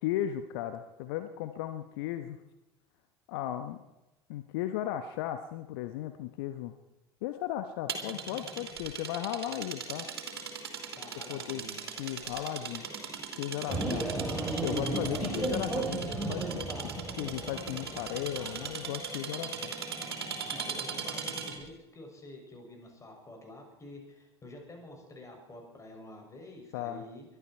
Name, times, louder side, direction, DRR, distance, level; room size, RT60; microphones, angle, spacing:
voice 1, 0.0-2.4 3.3-3.8 4.3-6.7 7.2-10.1 11.3-11.6 12.0-12.8 13.4-14.1 14.6-19.7 26.7-27.1, left 12 dB, 65° left, 8 dB, 1.1 m, -36 dB
sound 1, 7.9-21.7, right 5 dB, 75° right, 3.0 m, -39 dB
voice 2, 11.0-11.8 20.5-27.2, left 1 dB, 25° left, 2 dB, 6.6 m, -49 dB
sound 2, 13.7-19.0, right 2 dB, 5° right, 4.2 m, -34 dB
23.0 x 12.5 x 4.5 m, 0.98 s
figure-of-eight pair, 70°, 13 cm